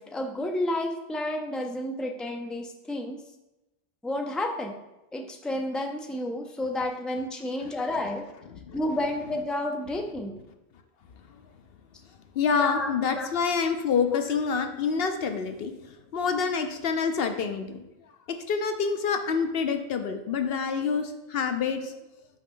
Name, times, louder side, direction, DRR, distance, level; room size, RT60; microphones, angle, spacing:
voice 1, 0.0-3.2 4.0-4.7 5.1-8.3 8.7-10.4 12.6-13.3 14.1-14.2 15.2-15.3, left 1 dB, ahead, 3 dB, 0.4 m, -31 dB
voice 2, 12.4-15.7 16.1-17.8 18.3-21.9, left 6 dB, 70° left, 7 dB, 0.8 m, -27 dB
6.1 x 5.0 x 3.7 m, 0.95 s
omnidirectional pair, 1.0 m